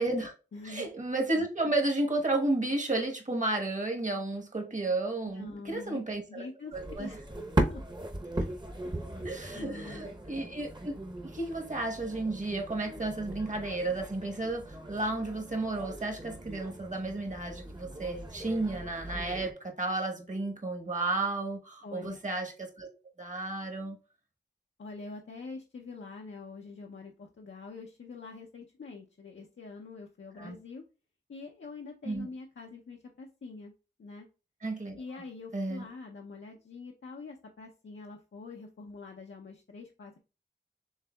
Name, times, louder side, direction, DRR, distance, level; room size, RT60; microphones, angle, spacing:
voice 1, 0.0-0.3 0.6-6.4 6.7-7.1 9.2-10.9 11.2-22.9 23.2-24.0 30.4-30.5 32.0-32.3 34.6-35.0 35.5-35.8, right 2 dB, 40° right, 1.1 m, -32 dB
voice 2, 0.5-0.9 5.4-6.0 6.3-7.8 8.8-10.1 21.8-22.2 24.8-30.8 31.3-33.7 34.0-34.3 34.9-40.2, left 4 dB, 90° left, 0.5 m, -45 dB
sound 1, 6.7-19.5, right 1 dB, 25° right, 0.7 m, -38 dB
6.4 x 3.4 x 2.2 m
wide cardioid pair, 45°, 19 cm